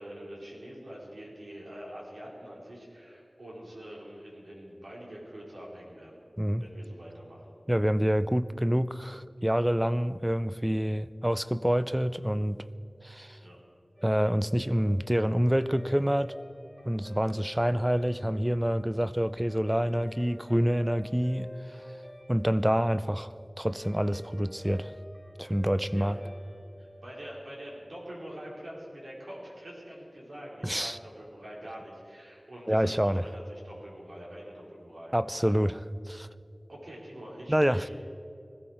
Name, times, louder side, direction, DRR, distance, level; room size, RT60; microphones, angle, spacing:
voice 1, 0.0-6.2 6.6-7.4 13.4-13.6 25.9-26.2 26.8-35.1 35.4-35.5 36.7-37.9, equal, 90° right, 4.2 m, -45 dB
voice 2, 7.7-12.6 13.0-13.4 14.0-16.3 16.9-21.5 22.3-23.3 23.6-24.9 25.4-26.2 30.6-31.0 32.7-33.2 35.1-36.3 37.5-37.9, equal, 10° right, 0.5 m, -27 dB
Guitar, 14.0-28.5, equal, 30° right, 3.3 m, -49 dB
20.5 x 15.5 x 4.4 m
wide cardioid pair, 60°, 0 cm